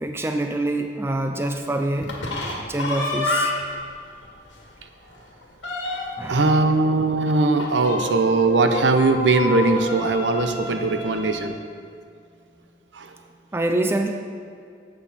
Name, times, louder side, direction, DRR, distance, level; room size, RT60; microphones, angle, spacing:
voice 1, 0.0-2.2 2.7-3.5 6.2-6.6 13.5-14.1, right 2 dB, 15° right, 4 dB, 0.4 m, -25 dB
sound 1, 2.0-3.8 4.2-4.3 4.6-4.7 5.1-6.3 7.6-11.5, left 2 dB, 80° left, 1.7 m, -29 dB
voice 2, 6.3-11.6 12.9-13.2, right 3 dB, 75° right, 7 dB, 0.8 m, -20 dB
12.0 x 7.8 x 4.2 m, 2.3 s
head